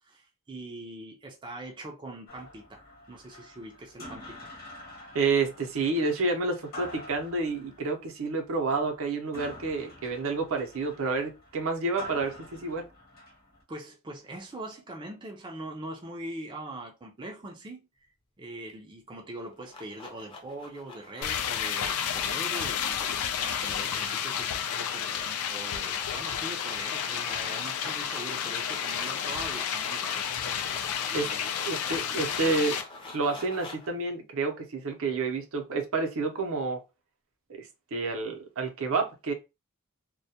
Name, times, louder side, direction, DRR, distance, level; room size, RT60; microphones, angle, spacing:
voice 1, 0.0-2.8 3.1-4.5 13.7-17.9 18.4-30.2 31.1-32.6, right 1 dB, 20° right, 0.4 m, -42 dB
sound 1, 2.3-13.6, left 1 dB, 45° left, 1.0 m, -47 dB
voice 2, 5.1-12.9 31.1-31.3 31.6-32.8 33.1-36.8 37.5-39.3, right 3 dB, 65° right, 0.6 m, -29 dB
sound 2, 19.3-33.9, left 3 dB, 25° left, 0.6 m, -46 dB
sound 3, 21.2-32.8, left 8 dB, 80° left, 0.3 m, -31 dB
2.2 x 2.1 x 2.7 m
head